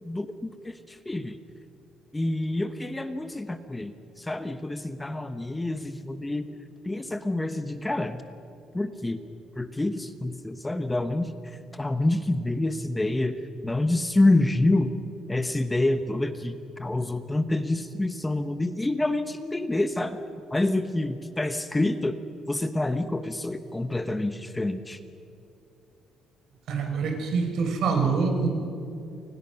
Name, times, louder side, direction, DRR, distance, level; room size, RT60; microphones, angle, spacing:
voice 1, 0.0-1.4 2.1-6.5 6.8-8.2 8.7-9.2 9.6-14.9 15.3-20.2 20.5-22.2 22.5-25.0, left 2 dB, 10° left, 9 dB, 1.1 m, -27 dB
voice 2, 26.7-28.5, right 5 dB, 65° right, 4 dB, 4.7 m, -25 dB
29.5 x 24.5 x 5.9 m, 2.7 s
cardioid pair, 130°, 0 cm